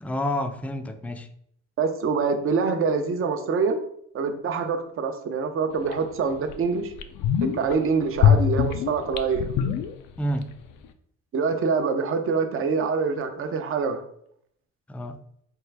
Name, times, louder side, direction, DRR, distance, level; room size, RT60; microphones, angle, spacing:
voice 1, 0.0-1.3 10.2-10.6 14.9-15.2, left 1 dB, 5° left, 0.3 m, -29 dB
voice 2, 1.8-3.8 4.1-6.9 7.4-9.5 11.3-14.0, right 5 dB, 45° right, 0.6 m, -25 dB
sound 1, 5.9-6.0 6.5-6.6 6.9-7.7 8.2-10.4 10.7-10.8, left 9 dB, 75° left, 0.5 m, -22 dB
4.4 x 2.4 x 3.3 m
cardioid pair, 90°, 30 cm